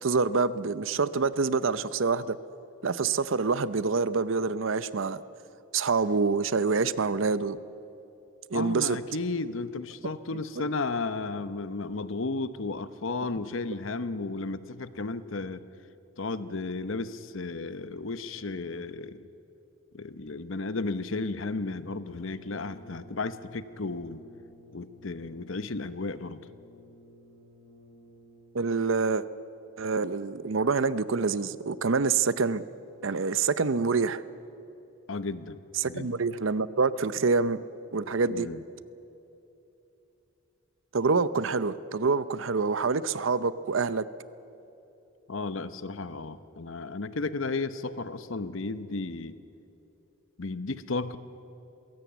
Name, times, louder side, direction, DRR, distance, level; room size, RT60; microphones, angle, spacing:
voice 1, 0.0-2.4 2.8-5.2 5.7-7.6 8.5-9.0 28.5-29.2 29.8-32.6 33.0-34.2 35.8-37.6 37.9-38.5 40.9-44.0, right 4 dB, 65° right, 16 dB, 0.6 m, -26 dB
voice 2, 8.5-15.6 16.2-19.3 19.9-24.2 24.7-26.4 35.1-35.6 35.8-36.1 38.3-38.6 45.3-49.3 50.4-51.2, left 3 dB, 70° left, 13 dB, 0.9 m, -34 dB
Brass instrument, 21.6-28.7, left 1 dB, 20° left, 5.4 m, -54 dB
22.5 x 17.0 x 8.1 m, 2.9 s
head